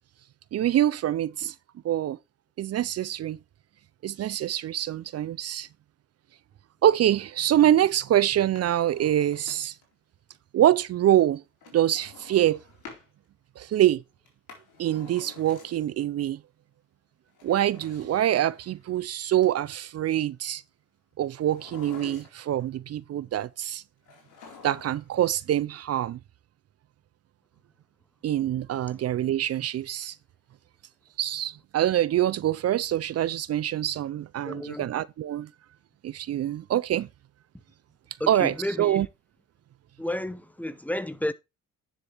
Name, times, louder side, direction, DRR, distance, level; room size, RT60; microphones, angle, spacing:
voice 1, 0.5-1.5 1.8-2.2 2.6-3.4 4.0-5.7 6.8-9.8 10.5-11.4 11.7-12.6 13.6-14.0 14.8-16.4 17.4-20.6 21.2-23.8 24.6-26.2 28.2-30.2 31.2-35.5 36.0-37.1 38.3-39.1, right 12 dB, 55° right, 0.5 m, -25 dB
Drawer open or close, 8.4-9.9 11.6-13.1 14.2-16.0 17.3-18.9 21.4-22.6 24.1-25.2 25.4-25.5, left 5 dB, 80° left, 4.1 m, -49 dB
voice 2, 34.4-34.9 38.2-39.1 40.0-41.3, left 1 dB, 5° left, 0.9 m, -32 dB
10.0 x 6.9 x 3.4 m
cardioid pair, 90°, 30 cm